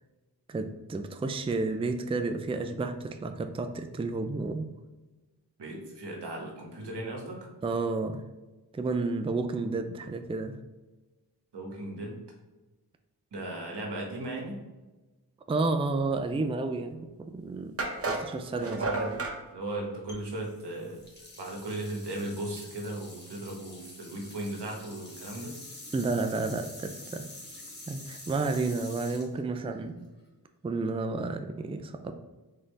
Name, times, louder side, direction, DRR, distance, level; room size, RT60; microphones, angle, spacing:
voice 1, 0.5-4.7 7.6-8.2 8.7-10.6 15.5-17.8 18.0-18.8 25.9-27.2 27.9-30.1 30.6-32.1, right 3 dB, 15° right, 7 dB, 0.4 m, -31 dB
voice 2, 5.6-7.5 11.5-12.2 13.3-14.6 18.6-19.1 19.5-21.0 21.4-25.5, right 1 dB, 85° right, 0 dB, 1.2 m, -37 dB
sound 1, 16.9-17.0 17.8-19.4, right 3 dB, 35° right, 0.9 m, -32 dB
sound 2, 20.1-30.3, left 1 dB, 25° left, 1.5 m, -47 dB
3.9 x 3.7 x 3.3 m, 1.1 s
cardioid pair, 45°, 40 cm